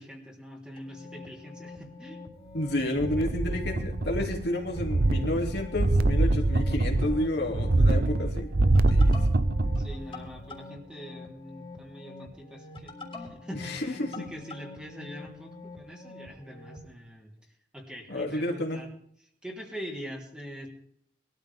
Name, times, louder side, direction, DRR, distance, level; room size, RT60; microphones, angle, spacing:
voice 1, 0.0-2.2 2.6-2.9 9.8-17.3 17.7-18.9 19.4-20.7, equal, 5° right, -1 dB, 3.5 m, -43 dB
sound 1, 0.8-16.9, left 3 dB, 30° left, 3.6 m, -46 dB
voice 2, 2.5-8.5 8.9-9.2 13.5-14.2 18.1-18.8, left 1 dB, 65° left, 1 dB, 2.9 m, -30 dB
sound 2, 3.0-4.4 4.7-10.0 10.4-10.5, right 2 dB, 60° right, 0.7 m, -24 dB
21.5 x 13.5 x 3.6 m, 0.66 s
head